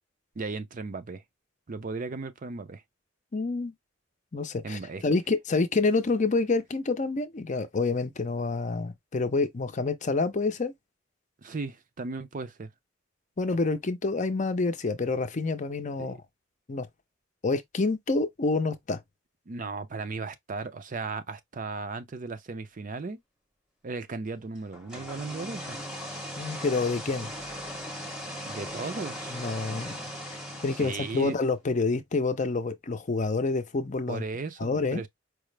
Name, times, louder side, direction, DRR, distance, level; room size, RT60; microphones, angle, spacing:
voice 1, 0.4-1.2 1.7-2.8 4.6-5.0 11.4-12.7 16.0-16.2 19.5-23.2 23.8-25.8 28.4-29.4 30.8-31.4 34.1-35.1, right 3 dB, 45° right, 0.5 m, -36 dB
voice 2, 3.3-3.7 4.3-10.7 13.4-16.2 16.7-16.9 17.4-19.0 26.4-27.3 29.3-29.9 30.6-34.2 34.6-35.0, left 3 dB, 40° left, 0.6 m, -28 dB
sound 1, 24.7-31.5, equal, 5° right, 0.8 m, -38 dB
4.7 x 2.0 x 3.2 m
head